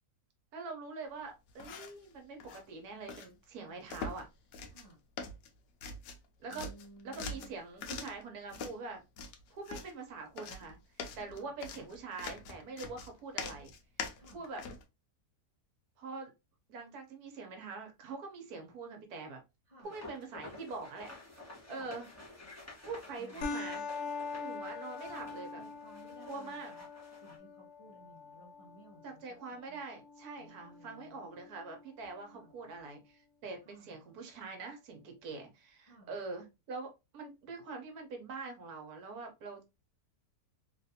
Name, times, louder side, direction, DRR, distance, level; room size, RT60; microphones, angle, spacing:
voice 1, 0.5-4.3 6.4-6.7 7.0-9.0 9.5-10.8 11.2-13.7 14.3-14.6 16.0-16.3 16.7-19.4 19.8-21.1 21.7-22.1 22.9-23.8 24.4-25.6 26.3-26.7 29.0-39.7, right 4 dB, 70° right, 1.2 m, -44 dB
sound 1, 1.5-2.1 2.4-2.6 3.1-3.3 3.9-4.3 4.5-4.9 5.2-6.3 6.5-8.2 8.5-8.8 9.2-9.9 10.4-14.8, left 4 dB, 90° left, 1.2 m, -43 dB
voice 2, 6.5-7.5 11.2-11.5 14.2-14.4 19.7-19.9 21.6-21.9 23.2-23.4 25.5-26.9 27.2-29.2 29.7-29.8 30.4-31.4 32.2-32.5 33.6-33.9 35.8-36.1, right 1 dB, 35° left, 0.5 m, -58 dB
sound 2, 19.8-27.4, left 2 dB, 10° left, 0.9 m, -52 dB
sound 3, 23.4-32.4, left 4 dB, 65° left, 0.8 m, -44 dB
3.3 x 2.5 x 2.7 m
omnidirectional pair, 1.7 m